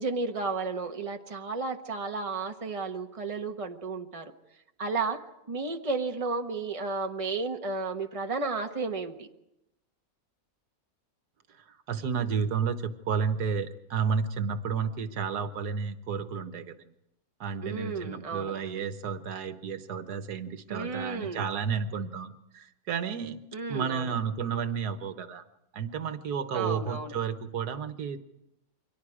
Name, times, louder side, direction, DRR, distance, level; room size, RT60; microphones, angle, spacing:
voice 1, 0.0-4.3 4.8-5.2 5.5-9.3 17.6-18.8 20.7-21.4 23.5-24.1 26.5-27.1, right 4 dB, 25° right, 4 dB, 1.3 m, -33 dB
voice 2, 11.9-16.7 17.4-23.4 23.7-25.4 25.7-28.2, right 6 dB, 80° right, 10 dB, 1.7 m, -31 dB
29.0 x 23.5 x 4.9 m, 0.85 s
omnidirectional pair, 1.7 m